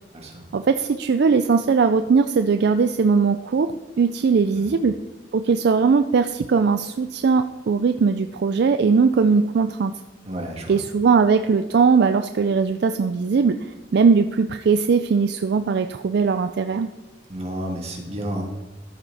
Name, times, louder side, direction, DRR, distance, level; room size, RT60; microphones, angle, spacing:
voice 1, 0.5-5.0 5.3-9.9 10.7-16.9, right 5 dB, 65° right, 8 dB, 0.4 m, -20 dB
voice 2, 10.3-10.8 17.3-18.4, right 1 dB, 35° right, 0 dB, 2.1 m, -31 dB
13.5 x 5.7 x 4.2 m, 1.2 s
head